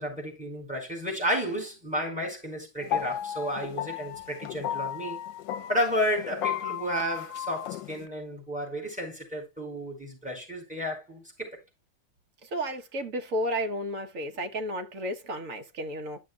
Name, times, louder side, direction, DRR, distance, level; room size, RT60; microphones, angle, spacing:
voice 1, 0.0-5.2 5.7-11.5, equal, 5° right, 4.5 m, -32 dB
sound 1, 2.8-8.0, left 11 dB, 80° left, 1.3 m, -34 dB
voice 2, 12.4-16.2, equal, 50° right, 1.3 m, -32 dB
12.0 x 6.3 x 2.3 m
omnidirectional pair, 2.0 m